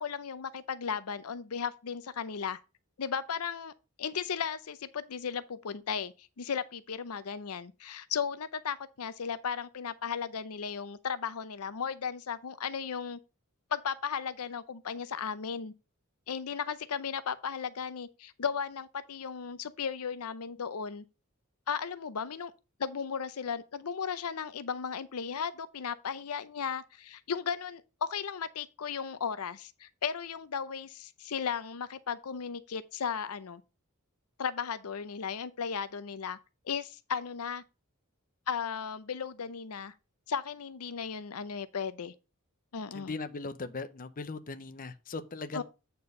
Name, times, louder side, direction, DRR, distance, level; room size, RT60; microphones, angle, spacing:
voice 1, 0.0-2.6 3.0-3.7 4.0-13.2 13.7-15.7 16.3-21.0 21.7-22.5 22.8-33.6 34.4-36.4 36.6-37.6 38.5-39.9 40.3-42.1 42.7-43.1 45.5-45.6, left 6 dB, 85° left, 0.6 m, -35 dB
voice 2, 42.9-45.6, left 3 dB, 40° left, 0.6 m, -39 dB
8.5 x 4.5 x 5.2 m
head